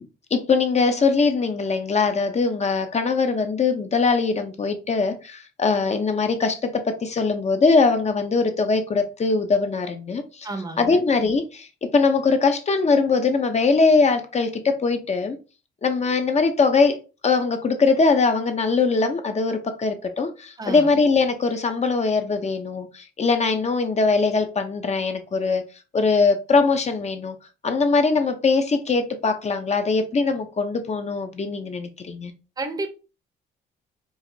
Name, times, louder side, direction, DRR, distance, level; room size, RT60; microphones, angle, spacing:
voice 1, 0.3-10.5 10.8-11.7 11.9-15.4 15.8-25.6 25.9-27.4 27.6-32.3, left 4 dB, 35° left, 0.7 m, -21 dB
voice 2, 10.4-11.0 20.6-20.9 32.6-32.9, right 2 dB, 20° right, 0.8 m, -31 dB
4.7 x 2.5 x 2.7 m
cardioid pair, 90°, 20 cm